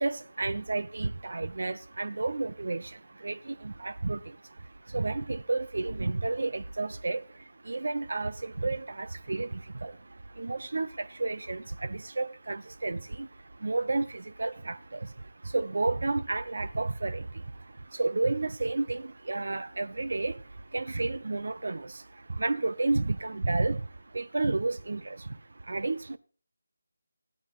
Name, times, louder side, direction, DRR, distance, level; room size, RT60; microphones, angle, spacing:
voice 1, 0.0-2.8 3.2-4.2 4.9-7.2 7.7-9.5 9.8-9.9 10.4-13.3 13.6-14.8 15.5-17.2 18.0-20.4 20.7-21.9 22.4-23.8 24.1-25.2 25.7-26.2, right 3 dB, 65° right, 0.6 m, -31 dB
17.0 x 12.0 x 2.5 m
figure-of-eight pair, 160°, 0 cm